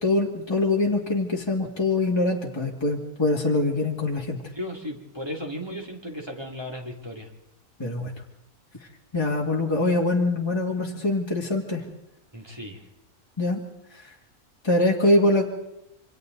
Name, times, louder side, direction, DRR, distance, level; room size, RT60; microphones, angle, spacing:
voice 1, 0.0-4.4 7.8-8.1 9.1-11.8 13.4-13.6 13.9-14.1 14.6-15.4, left 2 dB, 15° left, -1 dB, 2.2 m, -23 dB
voice 2, 4.5-7.3 12.3-12.8, left 1 dB, 15° right, 1 dB, 2.9 m, -35 dB
27.5 x 25.0 x 4.0 m, 0.85 s
omnidirectional pair, 1.6 m